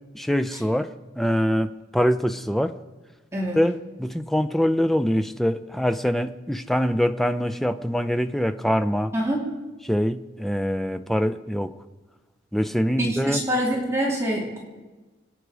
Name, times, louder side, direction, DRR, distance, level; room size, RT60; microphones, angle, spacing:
voice 1, 0.1-0.9 1.2-2.7 3.5-9.1 9.9-11.7 12.5-13.4, equal, ahead, 10 dB, 0.5 m, -24 dB
voice 2, 9.1-9.4 13.0-14.6, equal, 15° right, -3 dB, 2.5 m, -25 dB
25.5 x 9.3 x 4.9 m, 1.2 s
head